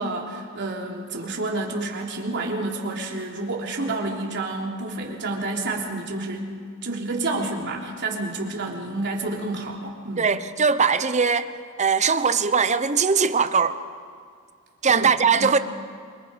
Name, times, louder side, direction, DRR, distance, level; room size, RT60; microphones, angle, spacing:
voice 1, 0.0-6.5 6.8-10.3 15.0-15.5, right 2 dB, 55° right, 3.4 m, -29 dB
voice 2, 10.2-11.4 11.8-13.8 14.8-15.6, right 5 dB, 35° right, 0.9 m, -20 dB
28.0 x 24.5 x 5.2 m
head